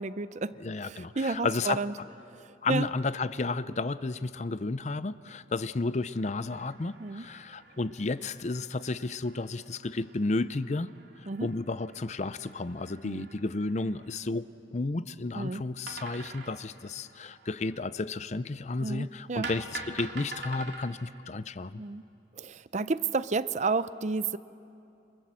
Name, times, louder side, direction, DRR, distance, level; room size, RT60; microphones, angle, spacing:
voice 1, 0.0-1.9 2.2-2.9 7.0-7.3 11.3-11.5 13.0-13.3 15.3-15.6 18.8-19.5 21.8-22.1 22.3-24.4, right 4 dB, 40° right, 15 dB, 0.5 m, -32 dB
voice 2, 0.6-1.8 2.6-10.9 11.2-21.8, left 3 dB, 40° left, 15 dB, 0.6 m, -32 dB
sound 1, 6.1-14.1 15.9-18.0 19.4-20.9, right 3 dB, 75° right, 2.6 m, -46 dB
28.5 x 27.0 x 7.5 m, 2.7 s
head